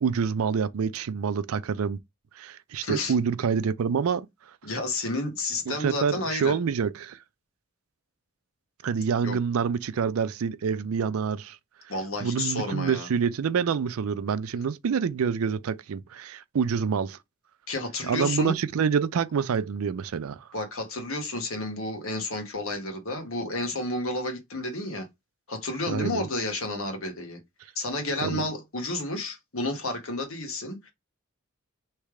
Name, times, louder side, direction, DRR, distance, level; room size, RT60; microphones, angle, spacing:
voice 1, 0.0-2.0 2.4-4.3 5.7-7.2 8.8-11.6 12.2-17.2 18.1-20.5 25.9-26.2 28.2-28.4, right 6 dB, 75° right, 0.4 m, -27 dB
voice 2, 2.8-3.1 4.6-6.5 9.2-9.4 11.9-13.1 17.7-18.5 20.5-25.1 25.5-27.4 27.7-30.9, left 2 dB, 65° left, 1.4 m, -31 dB
3.3 x 3.2 x 4.7 m
head